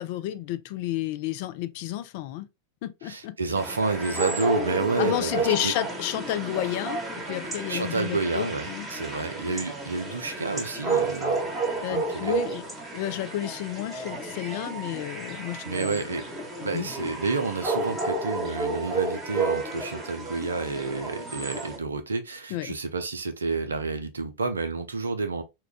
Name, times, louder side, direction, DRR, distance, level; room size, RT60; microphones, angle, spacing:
voice 1, 0.0-2.5 2.8-3.4 5.0-8.9 11.8-12.6 12.9-16.1 16.7-16.9 22.5-22.7, left 13 dB, 50° left, 0.4 m, -31 dB
voice 2, 3.0-5.7 7.7-11.4 11.9-12.4 15.6-16.2 16.6-25.4, right 4 dB, 75° right, 0.5 m, -30 dB
sound 1, 3.6-21.8, right 2 dB, 10° right, 1.1 m, -31 dB
2.9 x 2.3 x 3.4 m
figure-of-eight pair, 90°, 0 cm